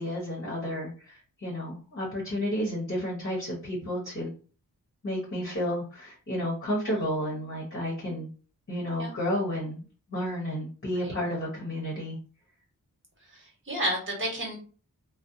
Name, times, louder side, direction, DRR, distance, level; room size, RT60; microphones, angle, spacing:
voice 1, 0.0-4.3 5.0-8.3 8.7-9.8 10.1-12.2, equal, 35° left, -4 dB, 1.0 m, -31 dB
voice 2, 13.3-14.6, right 1 dB, 35° right, 0 dB, 1.3 m, -31 dB
2.4 x 2.1 x 2.6 m, 0.37 s
cardioid pair, 60°, 35 cm